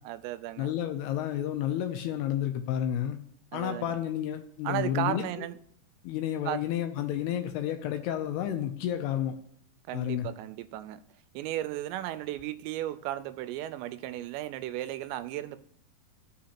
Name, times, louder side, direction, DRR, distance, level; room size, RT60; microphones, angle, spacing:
voice 1, 0.0-0.7 3.5-3.9 4.6-5.6 6.5-6.6 9.9-11.0 11.3-15.6, right 14 dB, 85° right, 2.8 m, -35 dB
voice 2, 0.6-3.2 3.5-5.2 6.0-9.4 9.9-10.3, left 11 dB, 80° left, 2.5 m, -31 dB
14.5 x 6.2 x 2.9 m
omnidirectional pair, 5.0 m